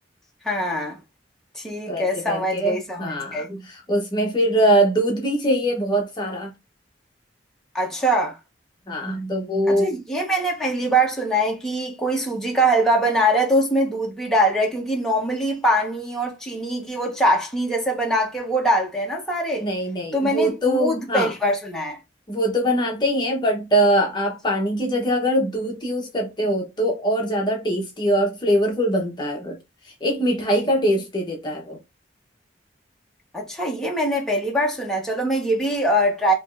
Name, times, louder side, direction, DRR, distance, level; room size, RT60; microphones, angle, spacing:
voice 1, 0.4-1.0 1.5-3.5 7.7-8.4 9.7-19.7 20.1-22.0 33.3-36.3, right 1 dB, 5° left, 1.1 m, -23 dB
voice 2, 1.9-6.5 8.9-9.9 19.6-21.3 22.3-29.6 30.0-31.8, equal, 25° left, 1.0 m, -22 dB
5.1 x 3.0 x 2.5 m
head